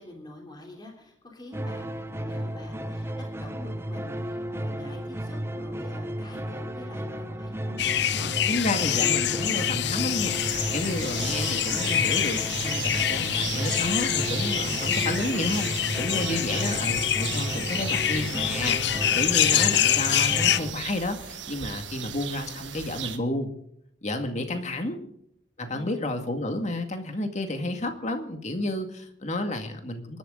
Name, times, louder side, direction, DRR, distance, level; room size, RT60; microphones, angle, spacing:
voice 1, 0.0-7.9 24.4-25.1 25.7-26.0, left 1 dB, 25° left, 1 dB, 3.3 m, -46 dB
sound 1, 1.5-20.7, right 1 dB, 15° right, 0.8 m, -34 dB
sound 2, 7.8-20.6, left 10 dB, 60° left, 0.7 m, -26 dB
voice 2, 8.5-10.4 10.7-15.7 16.0-18.8 19.1-23.5 24.0-25.0 25.6-30.2, left 2 dB, 40° left, 6 dB, 2.1 m, -31 dB
sound 3, 10.3-23.2, right 9 dB, 80° right, 1.6 m, -37 dB
27.0 x 12.0 x 3.9 m, 0.70 s
head